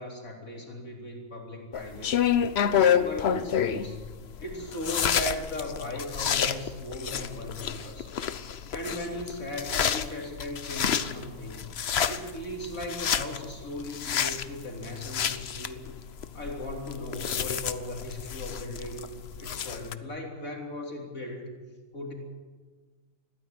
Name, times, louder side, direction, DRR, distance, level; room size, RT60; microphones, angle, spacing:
voice 1, 0.0-2.2 2.7-4.1 4.4-8.1 8.7-11.7 12.1-15.8 16.3-19.1 19.4-21.5 21.9-22.1, left 1 dB, 45° left, 0 dB, 4.3 m, -37 dB
sound 1, 1.7-19.9, left 8 dB, 65° left, 0.6 m, -29 dB
21.0 x 14.5 x 9.4 m, 1.4 s
omnidirectional pair, 2.1 m